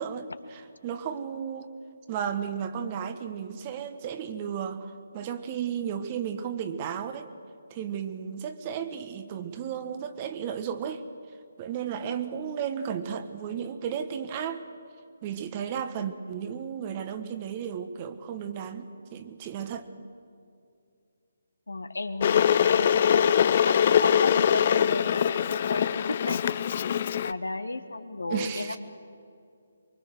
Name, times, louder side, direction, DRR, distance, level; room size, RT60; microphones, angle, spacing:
voice 1, 0.0-1.7 2.1-7.3 7.7-11.0 11.6-14.6 15.2-19.9 28.3-28.8, right 8 dB, 30° right, 9 dB, 1.3 m, -34 dB
voice 2, 21.7-26.6 27.2-28.8, left 2 dB, 75° left, 10 dB, 1.4 m, -34 dB
Water / Boiling, 22.2-27.3, left 8 dB, 40° left, 0.5 m, -23 dB
24.0 x 23.5 x 6.6 m, 2.4 s
figure-of-eight pair, 145°, 0 cm